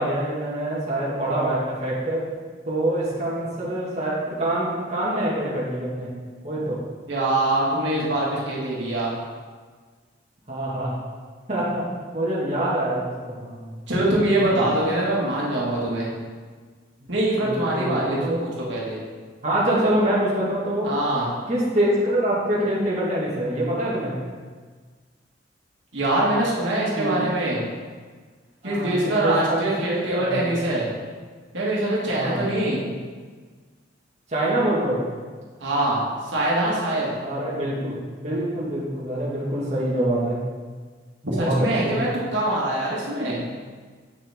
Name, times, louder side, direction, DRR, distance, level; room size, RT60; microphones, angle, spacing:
voice 1, 0.0-2.3 2.7-6.1 6.4-6.8 10.5-10.9 11.5-11.8 12.1-13.7 14.5-14.7 17.4-18.4 19.4-20.9 21.5-24.2 26.9-27.1 28.6-30.5 32.1-32.5 34.3-35.0 37.2-40.4 41.2-42.0, right 1 dB, 35° right, -7 dB, 1.7 m, -25 dB
voice 2, 7.1-9.1 13.9-16.1 17.1-19.0 20.8-21.3 25.9-27.6 28.6-30.8 31.5-32.8 35.6-36.0 36.3-37.2 41.3-43.4, right 1 dB, 75° right, -6 dB, 1.9 m, -23 dB
8.3 x 6.6 x 3.6 m, 1.5 s
head